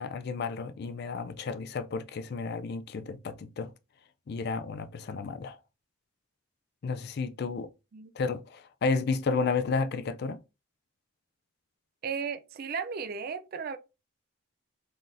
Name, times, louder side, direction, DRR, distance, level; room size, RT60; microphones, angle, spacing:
voice 1, 0.0-3.7 4.3-5.6 6.8-7.7 8.2-10.4, left 4 dB, 50° left, 0.3 m, -32 dB
voice 2, 12.0-13.8, right 6 dB, 45° right, 0.3 m, -35 dB
3.9 x 3.9 x 2.5 m
head